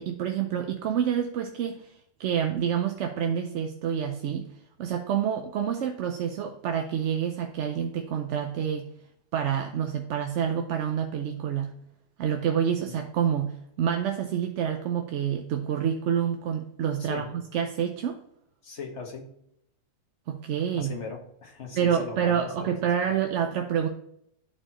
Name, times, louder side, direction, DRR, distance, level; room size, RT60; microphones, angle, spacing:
voice 1, 0.0-1.9 2.2-4.5 4.8-8.9 9.3-11.7 12.2-18.2 20.3-20.9 21.7-23.9, right 8 dB, 80° right, 5 dB, 0.9 m, -28 dB
voice 2, 17.0-17.3 18.6-19.3 20.8-22.7 23.1-23.2, left 5 dB, 75° left, 2 dB, 1.6 m, -38 dB
12.0 x 4.4 x 2.9 m, 0.74 s
omnidirectional pair, 1.2 m